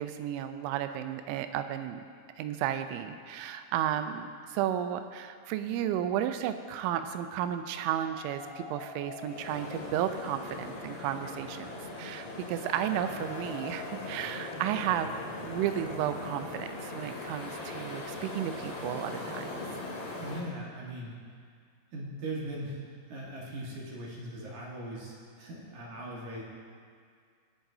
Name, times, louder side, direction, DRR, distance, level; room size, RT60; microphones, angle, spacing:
voice 1, 0.0-2.0 2.4-11.7 12.0-15.1 15.4-19.6, right 10 dB, 85° right, 9 dB, 3.0 m, -33 dB
sound 1, 7.7-17.6, left 3 dB, 85° left, 1.9 m, -49 dB
sound 2, 9.2-20.4, left 2 dB, 45° left, 2.5 m, -40 dB
voice 2, 20.2-21.1 21.9-26.4, right 1 dB, 60° right, -4 dB, 2.0 m, -40 dB
24.5 x 8.8 x 2.7 m, 2.1 s
omnidirectional pair, 5.4 m